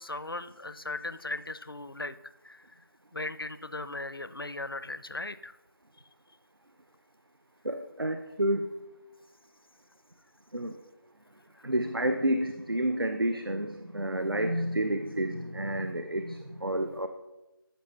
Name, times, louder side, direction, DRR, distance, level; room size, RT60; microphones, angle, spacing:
voice 1, 0.0-2.2 2.4-2.8 3.1-5.6 11.5-11.6, left 2 dB, 75° left, 13 dB, 0.6 m, -38 dB
voice 2, 7.6-8.7 10.5-10.7 11.6-17.1, right 1 dB, 70° right, 8 dB, 0.7 m, -30 dB
13.5 x 6.8 x 3.1 m, 1.0 s
figure-of-eight pair, 175°, 12 cm